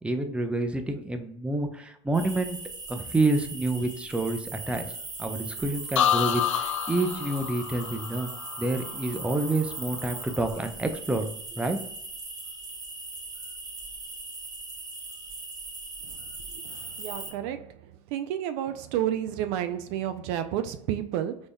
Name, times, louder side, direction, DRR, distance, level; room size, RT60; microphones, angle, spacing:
voice 1, 0.0-2.6 2.9-4.9 5.2-8.3 8.6-11.8, right 2 dB, 5° right, 7 dB, 0.5 m, -28 dB
sound 1, 2.1-17.3, right 3 dB, 25° right, 1.1 m, -39 dB
sound 2, 6.0-9.8 10.1-10.6, left 9 dB, 85° left, 0.4 m, -29 dB
voice 2, 16.6-17.7 18.1-21.4, right 11 dB, 60° right, 9 dB, 0.4 m, -30 dB
3.9 x 3.5 x 2.2 m, 0.71 s
hypercardioid pair, 80°, 15 cm